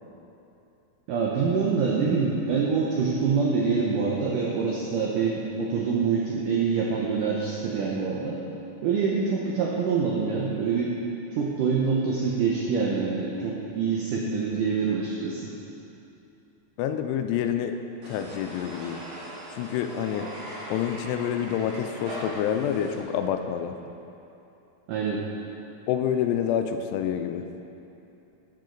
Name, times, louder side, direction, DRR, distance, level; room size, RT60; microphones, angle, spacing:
voice 1, 1.1-8.4 8.8-10.9 11.3-15.5 24.9-25.2, right 5 dB, 80° right, -3 dB, 1.8 m, -25 dB
voice 2, 16.8-17.8 18.1-19.0 19.5-20.3 20.7-23.8 25.9-27.4, left 9 dB, 85° left, 7 dB, 2.6 m, -27 dB
sound 1, 18.0-23.0, equal, 60° right, 3.8 m, -40 dB
13.0 x 8.2 x 3.9 m, 2.9 s
omnidirectional pair, 4.9 m